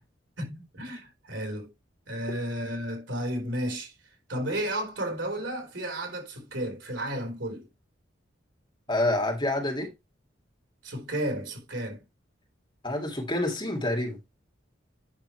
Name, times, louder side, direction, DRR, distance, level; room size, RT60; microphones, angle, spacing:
voice 1, 0.4-1.7 2.1-3.9 4.3-7.7 10.8-12.0, right 1 dB, 85° right, 4.2 m, -33 dB
voice 2, 8.9-9.9 12.8-14.2, left 1 dB, 25° left, 2.3 m, -27 dB
8.8 x 6.6 x 3.1 m
head